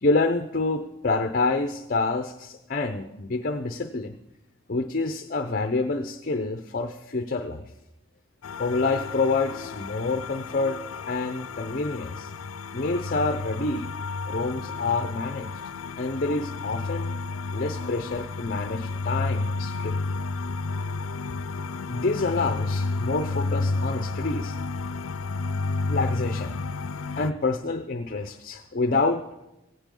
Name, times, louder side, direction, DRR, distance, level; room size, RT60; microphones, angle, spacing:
voice 1, 0.0-4.2 4.7-7.7 8.6-10.8 11.1-12.3 12.7-13.9 14.3-15.5 16.0-17.2 17.5-20.1 21.3-21.4 21.9-24.6 25.9-26.6 27.2-29.4, left 3 dB, 45° left, 7 dB, 0.6 m, -27 dB
sound 1, 8.4-27.3, left 3 dB, 85° left, 0.5 m, -31 dB
16.5 x 16.5 x 3.8 m, 0.95 s
head